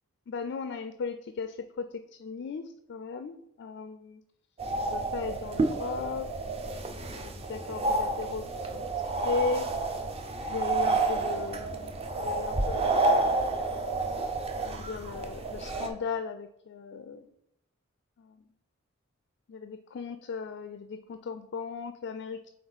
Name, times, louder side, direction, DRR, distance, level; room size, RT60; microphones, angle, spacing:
voice 1, 0.3-4.2 4.8-6.3 6.7-8.9 9.2-9.7 10.5-13.4 14.6-17.3 18.2-18.4 19.5-22.5, left 4 dB, 60° left, 9 dB, 0.3 m, -37 dB
sound 1, 4.6-15.9, right 2 dB, 30° right, 0.6 m, -30 dB
7.8 x 3.2 x 4.0 m, 0.78 s
head